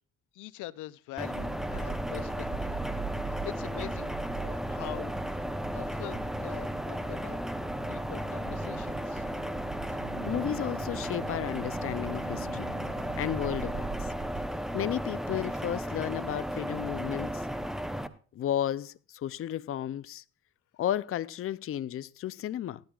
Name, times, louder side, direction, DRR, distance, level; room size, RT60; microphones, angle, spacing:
voice 1, 0.3-2.8 3.3-5.1 5.7-7.4 7.9-9.3, left 16 dB, 90° left, 0.6 m, -43 dB
sound 1, 1.2-18.1, equal, ahead, 0.9 m, -35 dB
sound 2, 1.3-14.5, right 5 dB, 40° right, 1.7 m, -42 dB
sound 3, 6.6-13.7, right 7 dB, 85° right, 1.0 m, -47 dB
voice 2, 10.2-12.7 13.2-14.1 14.7-17.5 18.3-20.2 20.8-22.8, left 11 dB, 45° left, 0.5 m, -33 dB
18.5 x 12.0 x 2.4 m
cardioid pair, 90°, 30 cm